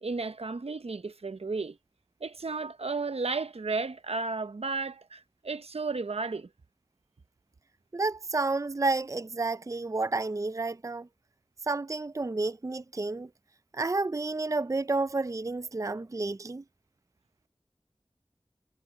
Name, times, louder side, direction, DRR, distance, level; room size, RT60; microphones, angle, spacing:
voice 1, 0.0-1.8 2.2-6.5, right 3 dB, 80° right, 0.8 m, -33 dB
voice 2, 7.9-11.1 11.7-13.3 13.7-16.6, right 3 dB, 30° right, 0.5 m, -30 dB
wide cardioid pair, 45°, 10 cm